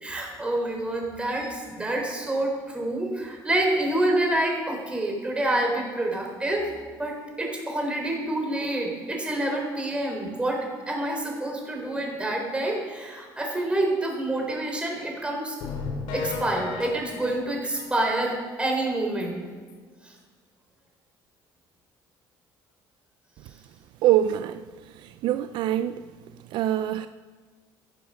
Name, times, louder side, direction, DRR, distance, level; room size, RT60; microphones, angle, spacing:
voice 1, 0.0-6.6 7.0-10.6 10.9-15.6 15.9-19.4 20.0-20.1, right 1 dB, 10° right, 4.0 m, -27 dB
sound 1, 15.6-18.3 18.7-18.8 19.2-19.3 19.7-19.8, left 5 dB, 80° left, 2.4 m, -35 dB
voice 2, 24.0-24.6 25.0-26.0 26.5-27.1, right 12 dB, 65° right, 0.4 m, -24 dB
15.0 x 11.0 x 6.5 m
cardioid pair, 135°, 9 cm